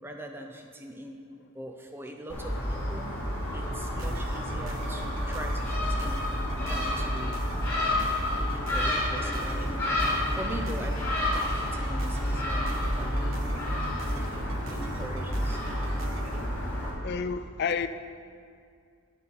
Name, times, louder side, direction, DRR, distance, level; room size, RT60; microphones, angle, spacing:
voice 1, 0.0-1.2 1.5-3.1 3.5-6.3 6.6-7.4 8.4-12.7 13.0-13.3 14.7-15.6, right 1 dB, 10° right, 3 dB, 0.5 m, -41 dB
Gull seagull, 2.3-16.9, left 1 dB, 10° left, 2.1 m, -29 dB
sound 1, 3.9-16.5, right 3 dB, 60° right, 0.6 m, -44 dB
sound 2, 8.5-15.0, left 2 dB, 75° left, 1.4 m, -44 dB
voice 2, 17.0-17.9, left 6 dB, 45° left, 11 dB, 0.3 m, -31 dB
9.9 x 6.7 x 4.2 m, 2.2 s
head